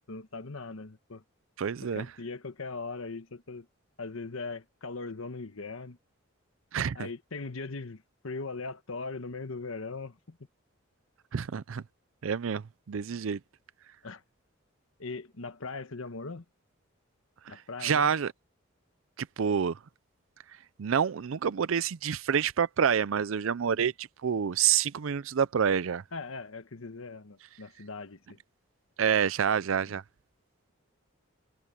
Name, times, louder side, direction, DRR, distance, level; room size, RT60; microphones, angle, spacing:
voice 1, 0.1-1.2 1.9-3.7 4.0-6.0 6.9-10.4 14.0-14.2 15.0-16.4 17.5-18.1 23.8-23.9 26.1-28.4, left 3 dB, 80° left, 1.2 m, -40 dB
voice 2, 1.6-2.1 6.7-7.1 11.3-11.8 12.2-13.4 17.5-18.3 19.2-19.8 20.8-26.0 29.0-30.0, right 7 dB, 70° right, 0.5 m, -28 dB
head